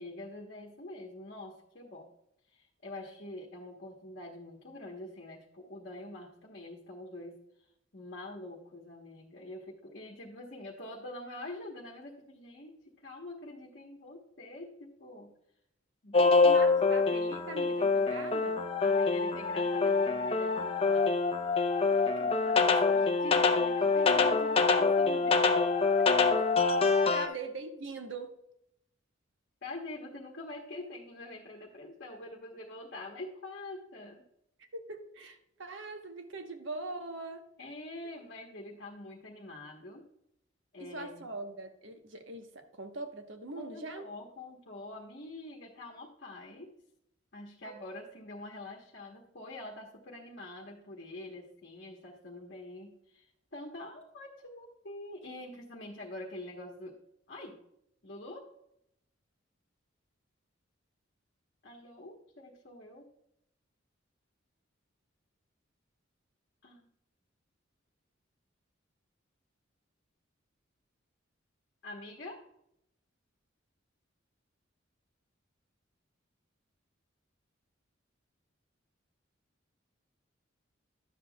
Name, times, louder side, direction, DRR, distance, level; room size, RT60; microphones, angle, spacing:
voice 1, 0.0-2.1 2.5-7.4 7.9-15.3 16.0-16.4 16.8-17.0 18.8-21.1 21.9-25.6 27.1-27.4 29.6-34.2 37.6-40.0 40.7-41.3 43.6-46.7 47.3-53.2 53.5-57.0 57.3-57.6 58.0-58.5 61.6-63.1 66.6-66.9 71.8-72.4, left 2 dB, 55° left, -2 dB, 1.1 m, -45 dB
sound 1, 16.1-27.3, left 4 dB, 30° left, 0.6 m, -25 dB
voice 2, 16.2-18.6 26.4-26.5 27.1-28.3 34.6-37.4 40.8-44.1 47.6-48.0, right 2 dB, 70° right, 6 dB, 1.1 m, -42 dB
11.0 x 7.4 x 2.3 m, 0.78 s
head